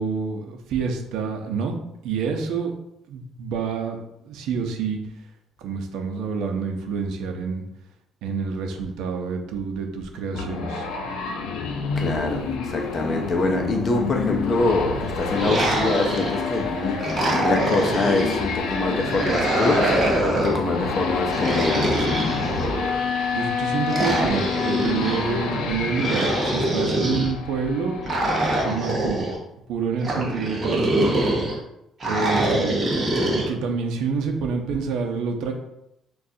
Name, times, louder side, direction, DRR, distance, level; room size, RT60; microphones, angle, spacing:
voice 1, 0.0-1.8 2.0-2.7 3.1-4.0 4.2-5.0 5.6-7.6 8.2-10.9 23.3-28.0 28.6-29.3 29.7-31.2 32.1-32.8 33.3-35.5, right 5 dB, 75° right, 0.6 m, -27 dB
sound 1, 10.3-28.7, left 5 dB, 85° left, 0.5 m, -28 dB
voice 2, 12.0-22.1 32.4-32.6, left 2 dB, 30° left, 0.5 m, -25 dB
sound 2, 15.3-16.5 17.0-18.4 19.0-20.6 21.3-23.0 23.9-25.2 25.9-27.3 28.0-29.4 30.0-31.5 32.0-33.5, right 1 dB, 25° right, 0.8 m, -24 dB
6.2 x 2.3 x 2.7 m
cardioid pair, 175°, 0 cm